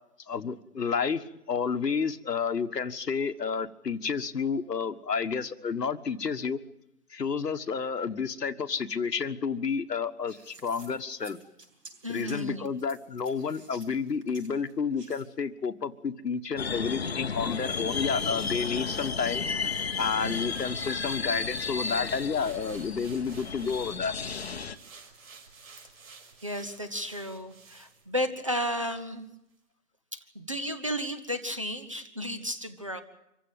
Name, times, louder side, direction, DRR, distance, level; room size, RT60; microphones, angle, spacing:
voice 1, 0.3-6.6 7.1-11.4 12.1-19.4 20.0-24.2, left 5 dB, 80° left, 9 dB, 1.6 m, -30 dB
sound 1, 10.3-15.3, right 3 dB, 90° right, 7.7 m, -52 dB
voice 2, 12.0-12.6 20.2-20.5 26.4-29.3 30.1-33.0, equal, 20° right, 10 dB, 0.8 m, -33 dB
sound 2, 16.6-24.8, left 5 dB, 40° left, 1.0 m, -33 dB
sound 3, 17.0-28.6 28.9-29.1, right 5 dB, 55° right, 5.4 m, -52 dB
25.5 x 15.5 x 9.0 m, 0.86 s
hypercardioid pair, 165°, 48 cm